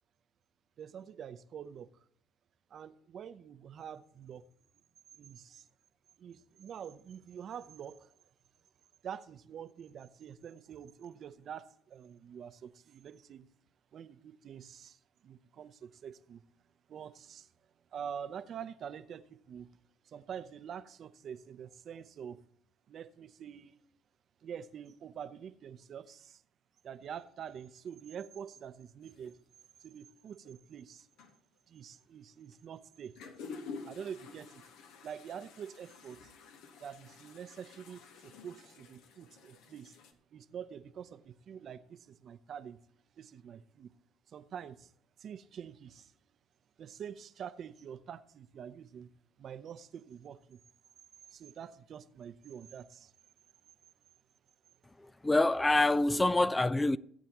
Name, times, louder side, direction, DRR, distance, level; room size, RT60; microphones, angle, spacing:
voice 1, 0.8-2.0 2.7-4.4 5.2-5.7 6.2-8.1 9.0-13.5 13.9-16.4 16.9-17.5 17.9-19.7 20.0-22.4 22.9-23.8 24.4-26.4 26.8-29.4 29.8-31.1 31.7-33.2 33.8-34.6 35.0-36.3 36.8-40.0 40.3-42.8 43.2-43.9 44.3-44.9 45.2-46.1 46.8-49.1 49.4-50.6 51.3-53.1, right 8 dB, 50° right, 0.7 m, -46 dB
sound 1, 29.1-29.3 30.5-30.6 31.0-31.4 32.5-32.6 33.0-40.1, left 4 dB, 70° left, 1.2 m, -50 dB
voice 2, 55.2-57.0, left 2 dB, 15° left, 0.3 m, -26 dB
16.5 x 8.3 x 3.0 m
hypercardioid pair, 65°, 0 cm